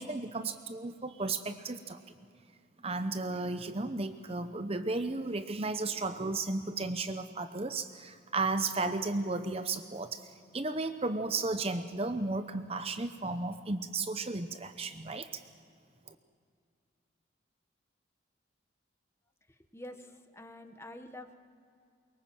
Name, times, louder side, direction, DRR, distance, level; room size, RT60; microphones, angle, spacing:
voice 1, 0.0-2.0 2.8-10.2 10.5-15.3 16.1-16.2, right 3 dB, 30° right, 9 dB, 0.8 m, -34 dB
voice 2, 19.7-21.4, left 1 dB, 15° left, 7 dB, 1.1 m, -47 dB
23.5 x 22.5 x 7.7 m, 2.4 s
head